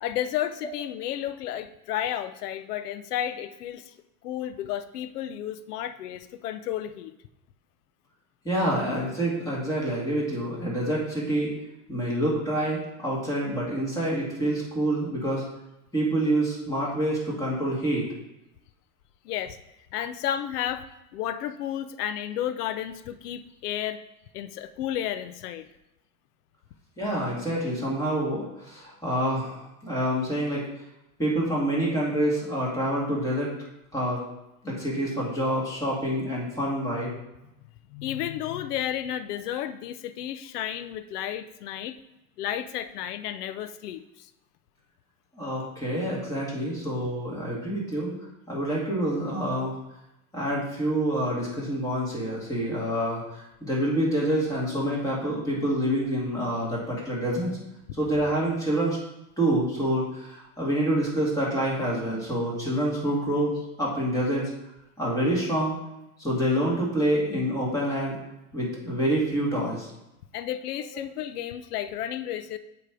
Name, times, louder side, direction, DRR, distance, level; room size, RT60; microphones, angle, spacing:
voice 1, 0.0-3.9 4.2-7.1 19.2-19.6 19.9-20.8 21.1-24.0 24.3-25.7 37.9-42.0 42.4-44.3 70.3-72.6, left 11 dB, 80° left, 12 dB, 0.7 m, -32 dB
voice 2, 8.4-11.6 11.9-15.4 15.9-18.1 27.0-30.7 31.2-33.5 33.9-34.2 34.6-37.1 45.3-48.1 48.5-49.8 50.3-57.5 58.0-59.0 59.4-63.5 63.8-64.5 65.0-65.8 66.2-68.2 68.5-69.9, right 1 dB, 5° left, -6 dB, 2.2 m, -27 dB
7.9 x 3.2 x 4.8 m, 0.90 s
supercardioid pair, 130°, 46 cm